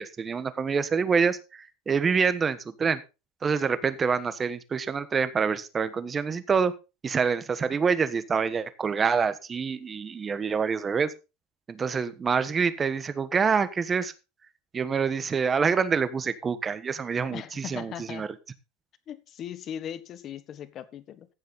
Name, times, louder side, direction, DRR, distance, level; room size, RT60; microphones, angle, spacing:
voice 1, 0.0-3.0 3.4-6.7 7.0-11.1 11.7-14.1 14.7-18.3, right 5 dB, 20° right, 13 dB, 1.3 m, -26 dB
voice 2, 17.3-18.3 19.1-21.3, left 9 dB, 35° left, 13 dB, 1.5 m, -39 dB
15.0 x 7.4 x 4.1 m, 0.29 s
supercardioid pair, 140°, 0 cm